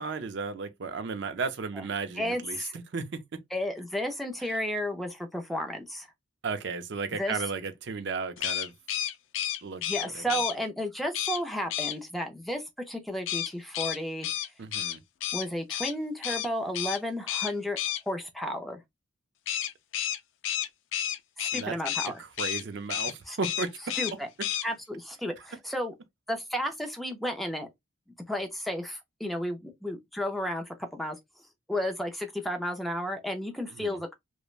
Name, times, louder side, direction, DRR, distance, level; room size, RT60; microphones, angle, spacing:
voice 1, 0.0-3.4 6.4-8.7 9.6-10.4 14.6-15.0 21.5-21.8 22.2-24.0 33.7-34.0, right 4 dB, 55° right, 0.5 m, -34 dB
voice 2, 2.2-2.7 3.5-6.1 7.2-7.4 9.8-14.3 15.3-17.8 18.1-18.8 21.4-22.2 23.3-23.4 24.0-24.3 24.6-25.9 26.3-27.7 28.3-31.2 31.7-34.1, equal, ahead, 0.4 m, -33 dB
sound 1, 8.4-10.5 11.1-11.4 11.7-12.0 13.3-15.9 16.2-16.5 16.7-17.0 17.3-18.0 19.5-22.1 22.4-22.6 22.9-23.1 23.4-24.1 24.4-24.6, left 11 dB, 70° left, 0.3 m, -31 dB
3.1 x 2.1 x 2.3 m
head